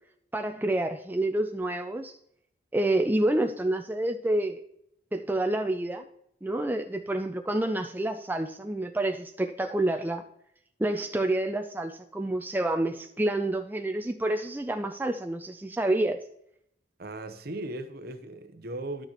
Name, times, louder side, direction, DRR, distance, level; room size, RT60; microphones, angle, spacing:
voice 1, 0.3-2.1 2.7-4.6 5.1-6.0 6.4-10.2 10.8-16.2, right 1 dB, 10° right, 0.4 m, -28 dB
voice 2, 17.0-19.1, right 2 dB, 55° right, 0.8 m, -37 dB
11.5 x 6.5 x 2.9 m
head